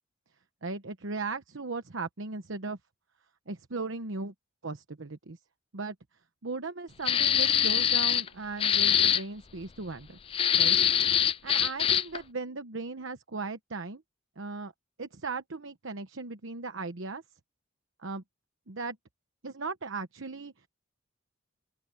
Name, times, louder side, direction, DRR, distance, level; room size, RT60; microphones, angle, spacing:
voice 1, 0.6-2.8 3.5-4.3 4.6-5.4 5.7-5.9 6.4-10.2 10.6-10.8 11.4-14.0 14.4-14.7 15.0-17.2 18.0-18.2 18.7-19.0 19.4-20.7, right 3 dB, 70° right, 1.0 m, -37 dB
sound 1, 7.0-8.3 8.6-9.2 10.3-12.2, left 9 dB, 25° left, 0.3 m, -24 dB
open air
head